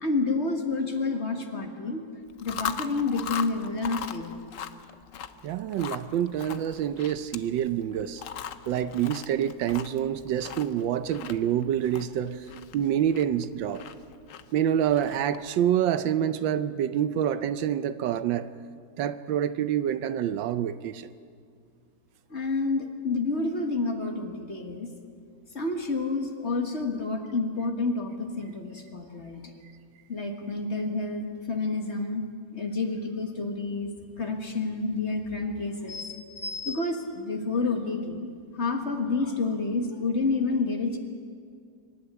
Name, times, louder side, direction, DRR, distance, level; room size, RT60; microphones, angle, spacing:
voice 1, 0.0-2.0 2.4-4.4 22.3-24.9 25.5-29.5 30.1-33.9 34.2-41.0, left 3 dB, 35° left, 4 dB, 1.6 m, -29 dB
Chewing mastication, 2.3-15.5, left 8 dB, 60° left, 0.8 m, -40 dB
voice 2, 5.4-8.2 8.7-12.5 12.7-13.8 14.5-18.5 19.0-21.1, right 10 dB, 75° right, 13 dB, 1.4 m, -27 dB
24.5 x 11.5 x 9.6 m, 2.2 s
omnidirectional pair, 2.1 m